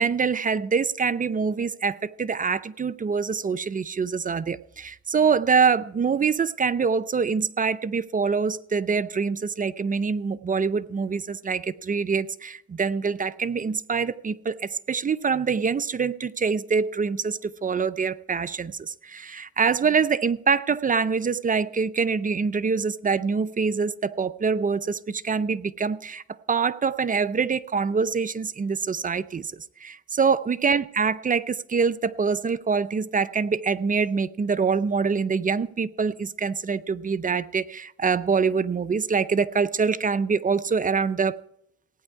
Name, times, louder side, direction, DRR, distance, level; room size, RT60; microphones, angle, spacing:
voice 1, 0.0-29.5 29.8-41.4, right 5 dB, 30° right, 0.5 m, -25 dB
16.5 x 9.6 x 4.6 m
cardioid pair, 90°, 30 cm